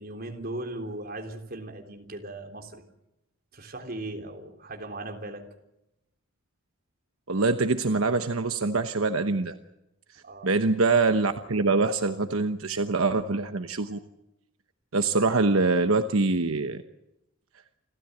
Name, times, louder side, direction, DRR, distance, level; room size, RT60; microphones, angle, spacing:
voice 1, 0.0-2.8 3.5-5.4 10.2-10.5, right 2 dB, 45° right, 3 dB, 3.6 m, -38 dB
voice 2, 7.3-9.5 10.4-14.0 14.9-16.8, right 3 dB, 80° right, 8 dB, 1.1 m, -24 dB
28.5 x 13.5 x 8.0 m, 0.89 s
head